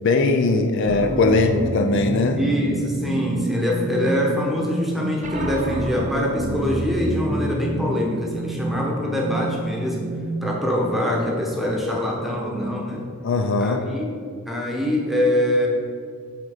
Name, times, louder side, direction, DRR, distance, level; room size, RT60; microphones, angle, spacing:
voice 1, 0.0-2.4 9.1-9.2 13.2-13.8, left 3 dB, 55° left, 5 dB, 0.4 m, -20 dB
sound 1, 0.9-10.8, right 2 dB, 35° right, 0.5 m, -29 dB
voice 2, 2.3-10.1 10.4-13.0 13.6-14.1 14.5-15.7, left 1 dB, ahead, -2 dB, 1.0 m, -24 dB
7.7 x 3.6 x 4.9 m, 2.3 s
head